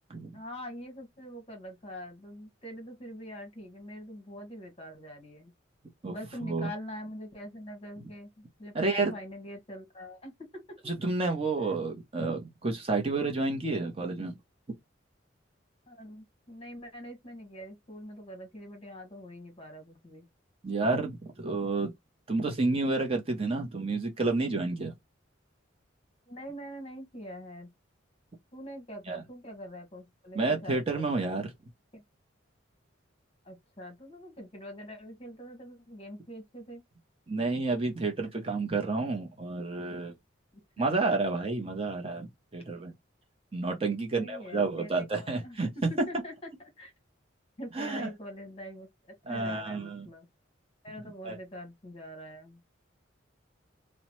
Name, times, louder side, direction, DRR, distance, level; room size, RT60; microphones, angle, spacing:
voice 1, 0.3-5.5 6.1-10.9 15.9-20.2 26.3-27.7 28.5-31.1 31.9-32.0 33.4-36.8 40.5-41.0 44.0-45.6 45.9-46.3 46.6-46.9 47.6-48.9 49.3-50.3 50.8-52.6, equal, 30° left, 1.1 m, -44 dB
voice 2, 8.7-9.1 10.9-14.3 20.6-21.9 22.3-24.9 29.1-29.2 30.3-31.5 37.3-40.1 40.8-42.9 43.5-45.7 46.0-46.1 47.7-48.1 49.3-50.1 51.2-51.4, right 3 dB, 30° right, 0.6 m, -30 dB
2.9 x 2.1 x 3.0 m
head